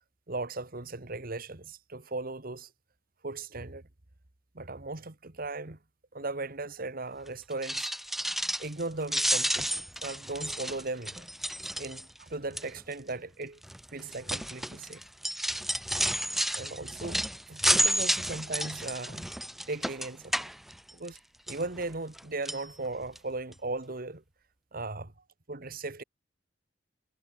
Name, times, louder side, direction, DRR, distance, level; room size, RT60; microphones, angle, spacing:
voice 1, 0.3-2.7 3.2-3.8 4.5-5.8 6.1-7.9 8.4-11.3 11.8-13.6 13.9-15.0 16.5-17.2 17.5-19.3 19.7-20.4 20.9-21.2 21.5-24.2 24.7-25.1 25.5-26.0, right 2 dB, 50° right, 1.7 m, -37 dB
sound 1, 7.5-8.8 9.1-12.2 12.6-12.9 13.6-21.2 21.5-22.2 22.4-22.6 23.2-23.3 23.5-23.6, equal, ahead, 0.6 m, -31 dB
head